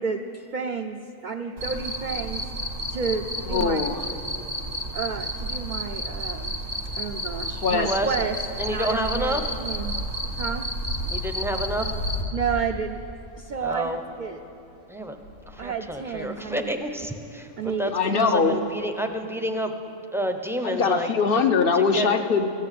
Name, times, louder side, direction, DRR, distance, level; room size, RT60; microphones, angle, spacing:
voice 1, 0.0-2.5 2.9-3.8 4.9-6.5 7.0-8.4 8.7-9.9 10.4-10.6 12.3-13.0 13.4-14.4 15.6-16.7 17.6-18.7, right 5 dB, 50° right, 4 dB, 0.6 m, -31 dB
Cricket, 1.6-12.2, equal, 90° right, 1.9 m, -31 dB
sound 1, 2.7-3.0 4.0-4.5 5.0-14.2 14.5-18.9, left 2 dB, 75° left, 2.3 m, -38 dB
voice 2, 3.5-4.1 7.6-7.9 17.9-18.6 20.6-22.5, left 5 dB, 55° left, 8 dB, 0.9 m, -22 dB
voice 3, 8.6-9.5 11.1-11.9 13.6-14.0 14.9-15.2 15.5-17.5 17.8-17.9 18.2-19.7 20.1-21.1 21.7-22.1, equal, 5° right, 5 dB, 0.6 m, -29 dB
15.0 x 8.7 x 9.2 m, 2.7 s
omnidirectional pair, 1.3 m